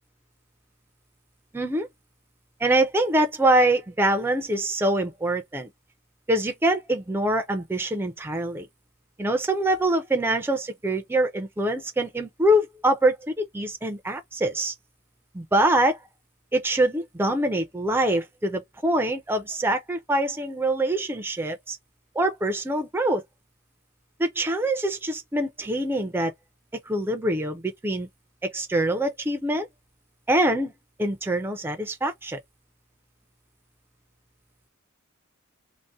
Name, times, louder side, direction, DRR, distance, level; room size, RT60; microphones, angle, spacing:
voice 1, 1.5-1.9 2.6-5.7 6.3-8.7 9.2-14.7 15.3-16.0 16.5-21.8 22.2-23.2 24.2-26.3 26.9-28.1 28.5-29.7 30.3-30.7 31.0-32.4, right 1 dB, 10° right, 0.4 m, -24 dB
2.6 x 2.1 x 3.4 m
head